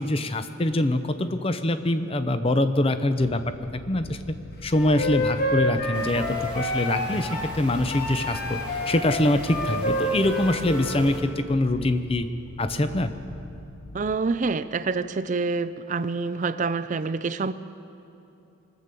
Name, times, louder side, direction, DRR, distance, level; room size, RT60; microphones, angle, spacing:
voice 1, 0.0-3.4 3.7-4.3 4.6-12.3 12.6-13.1, left 1 dB, 25° left, 10 dB, 0.6 m, -24 dB
sound 1, 3.2-14.2, left 2 dB, 75° left, 0.8 m, -42 dB
Wind instrument woodwind instrument, 4.7-7.5 7.9-11.0, left 1 dB, 45° left, 1.3 m, -29 dB
sound 2, 5.9-11.2, right 1 dB, 5° right, 1.8 m, -42 dB
voice 2, 13.9-17.5, right 4 dB, 35° right, 13 dB, 0.4 m, -27 dB
23.0 x 8.3 x 6.8 m, 2.8 s
head